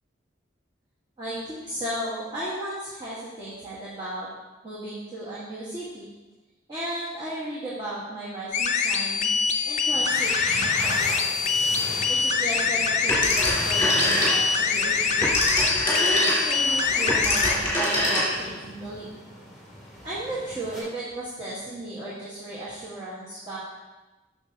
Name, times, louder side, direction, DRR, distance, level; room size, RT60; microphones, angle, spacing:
voice 1, 1.2-4.3 4.6-6.1 6.7-9.3 9.6-11.2 12.1-15.3 16.0-19.1 20.0-23.6, right 1 dB, 25° right, -9 dB, 1.5 m, -35 dB
sound 1, 8.5-17.6, left 5 dB, 40° left, 0.4 m, -24 dB
sound 2, 9.9-20.8, equal, ahead, 2.0 m, -37 dB
Telephone, 13.1-14.6 15.0-18.6, equal, 15° left, 2.6 m, -24 dB
8.3 x 6.2 x 2.8 m, 1.1 s
head